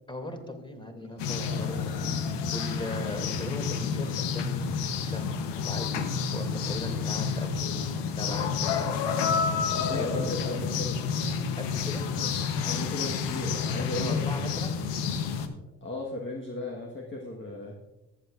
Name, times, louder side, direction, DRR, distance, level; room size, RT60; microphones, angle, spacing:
voice 1, 0.1-4.6 4.9-9.2 9.7-10.2 11.6-12.1 13.8-14.7, left 1 dB, 10° left, 5 dB, 2.6 m, -39 dB
sound 1, 1.2-15.5, left 6 dB, 75° left, 1.0 m, -29 dB
voice 2, 1.4-1.9 9.7-11.0 12.1-12.3 12.6-14.6 15.8-17.8, left 2 dB, 25° left, -1 dB, 1.5 m, -36 dB
14.5 x 8.5 x 2.5 m, 1.0 s
hypercardioid pair, 50°, 43 cm